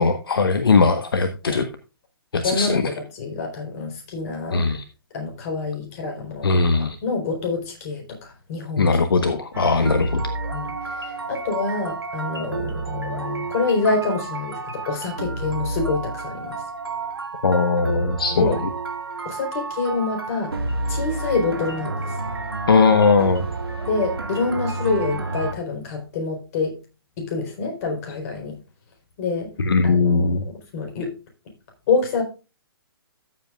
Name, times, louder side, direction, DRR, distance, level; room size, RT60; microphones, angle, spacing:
voice 1, 0.0-1.6 2.3-2.8 4.5-4.8 6.4-7.0 8.8-10.2 17.4-18.5 22.7-23.5 29.6-30.4, left 4 dB, 70° left, 8 dB, 1.1 m, -19 dB
voice 2, 2.3-4.7 5.1-8.9 10.5-16.6 18.3-18.6 19.2-20.5 20.9-22.2 23.8-26.8 27.2-28.6 29.2-29.5 29.8-31.1 31.9-32.2, left 4 dB, 40° left, 2 dB, 4.2 m, -26 dB
sound 1, 9.5-25.5, right 3 dB, 80° right, 2.1 m, -30 dB
14.5 x 7.9 x 2.4 m, 0.31 s
figure-of-eight pair, 125°, 13 cm